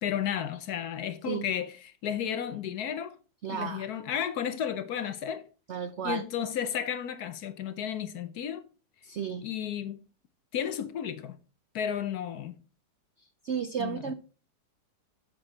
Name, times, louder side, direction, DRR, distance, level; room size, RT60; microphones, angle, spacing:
voice 1, 0.0-1.7 2.0-3.2 3.5-5.4 6.0-8.6 9.4-10.0 10.5-11.4 11.7-12.5 13.8-14.0, left 9 dB, 65° left, 1.2 m, -33 dB
voice 2, 3.4-3.9 5.7-6.2 9.0-9.5 13.2-14.1, right 7 dB, 80° right, 0.6 m, -33 dB
7.9 x 6.1 x 5.0 m
omnidirectional pair, 2.0 m